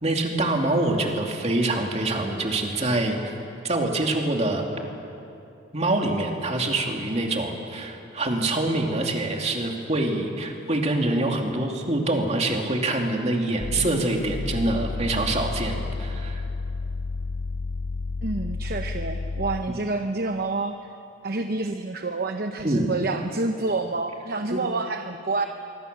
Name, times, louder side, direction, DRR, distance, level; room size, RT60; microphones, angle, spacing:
voice 1, 0.0-3.4 3.6-4.7 5.7-16.4 22.6-22.9 24.5-24.6, right 2 dB, 35° right, 2 dB, 2.6 m, -25 dB
sound 1, 13.6-19.8, left 3 dB, 70° left, 0.7 m, -31 dB
voice 2, 18.2-20.8 21.2-25.4, right 3 dB, 50° right, 6 dB, 0.9 m, -28 dB
25.5 x 24.0 x 6.8 m, 2.7 s
head